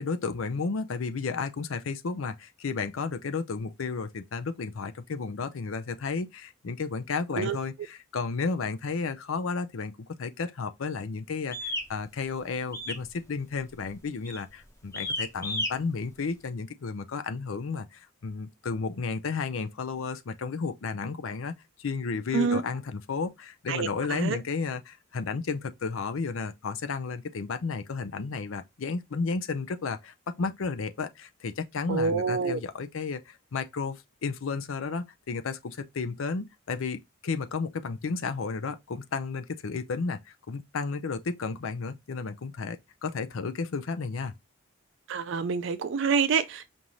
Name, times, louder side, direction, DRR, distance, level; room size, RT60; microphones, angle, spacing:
voice 1, 0.0-9.9 10.2-44.3, left 4 dB, 80° left, 0.5 m, -33 dB
sound 1, 11.5-11.9 12.7-13.1 13.4-13.7 14.2-14.5 14.9-15.7, left 1 dB, 15° left, 0.8 m, -32 dB
voice 2, 23.7-24.4 31.9-32.6 45.1-46.7, right 5 dB, 65° right, 0.4 m, -27 dB
5.4 x 2.6 x 3.0 m
head